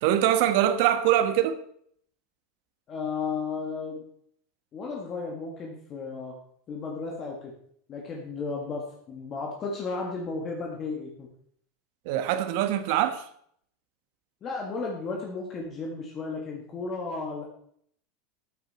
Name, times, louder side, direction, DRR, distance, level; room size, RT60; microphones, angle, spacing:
voice 1, 0.0-1.6 12.0-13.2, right 11 dB, 60° right, 1.3 m, -23 dB
voice 2, 2.9-4.0 4.7-6.4 6.7-7.5 7.9-11.3 14.4-17.5, left 4 dB, 30° left, 1.8 m, -34 dB
13.5 x 9.2 x 4.3 m
supercardioid pair, 160°, 0 cm